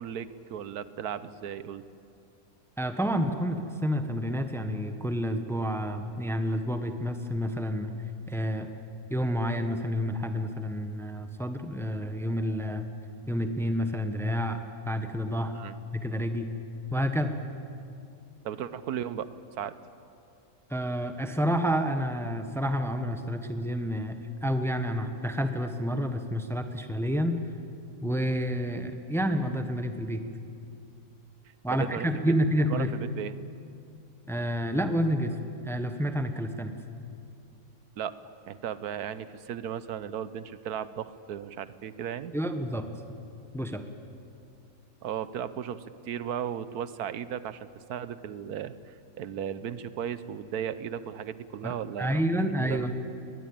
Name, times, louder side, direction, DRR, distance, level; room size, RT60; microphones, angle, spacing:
voice 1, 0.0-1.8 15.5-15.7 18.4-19.3 19.6-19.7 31.7-32.1 32.7-33.3 38.0-38.1 38.5-42.3 45.0-52.9, right 9 dB, 85° right, 14 dB, 1.3 m, -36 dB
voice 2, 2.8-7.9 8.3-8.7 9.1-12.8 13.3-14.6 14.9-15.6 15.9-16.5 16.9-17.4 20.7-27.4 28.0-30.2 31.6-32.9 34.3-35.4 35.6-36.7 42.3-42.9 43.5-43.8 51.6-52.9, equal, ahead, 7 dB, 1.0 m, -29 dB
21.5 x 20.5 x 8.8 m, 2.5 s
omnidirectional pair, 1.6 m